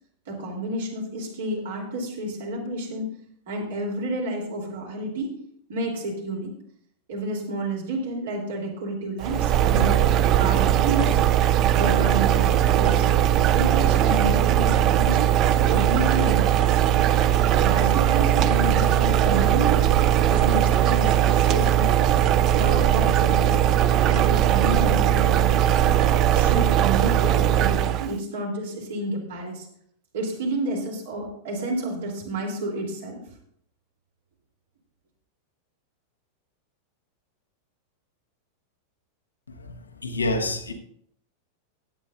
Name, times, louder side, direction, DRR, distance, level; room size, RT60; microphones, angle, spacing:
voice 1, 0.3-3.1 3.5-5.3 5.7-6.5 7.1-10.0 10.4-11.2 11.7-13.1 13.5-15.3 15.7-16.9 17.6-22.1 22.5-23.7 24.0-25.9 26.3-29.7 30.1-33.2, right 1 dB, 60° right, 3.4 m, -30 dB
sound 1, 9.2-28.1, right 11 dB, 35° right, 0.5 m, -19 dB
voice 2, 40.0-40.7, left 2 dB, 75° left, 1.4 m, -26 dB
16.0 x 9.8 x 2.7 m
figure-of-eight pair, 90°, 0 cm